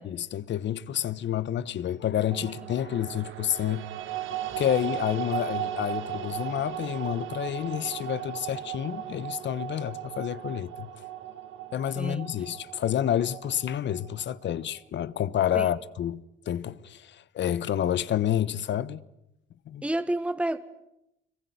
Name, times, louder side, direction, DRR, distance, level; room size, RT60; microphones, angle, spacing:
voice 1, 0.0-3.9 4.6-10.9 11.7-19.0 19.6-19.8, left 10 dB, 65° left, 1.2 m, -29 dB
sound 1, 2.3-14.5, right 12 dB, 85° right, 2.0 m, -37 dB
voice 2, 19.8-20.6, right 1 dB, 5° right, 1.4 m, -29 dB
26.0 x 23.0 x 9.6 m
cardioid pair, 90°, 20 cm